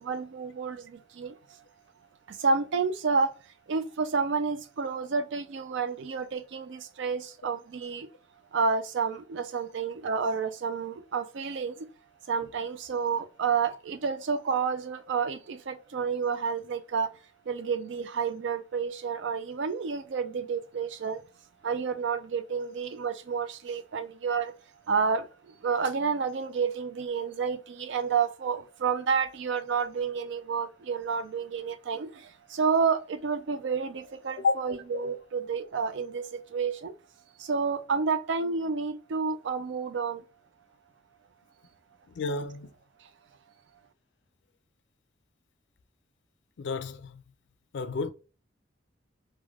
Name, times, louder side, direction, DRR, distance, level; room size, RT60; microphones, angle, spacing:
voice 1, 0.0-1.6 2.3-3.3 3.7-8.1 8.5-11.9 12.3-17.1 17.5-21.2 21.6-24.6 24.9-36.9 37.4-40.2, right 5 dB, 70° right, 0.4 m, -30 dB
voice 2, 42.2-42.7 46.6-47.2 47.7-48.1, left 4 dB, 65° left, 0.4 m, -30 dB
3.2 x 2.2 x 2.3 m
head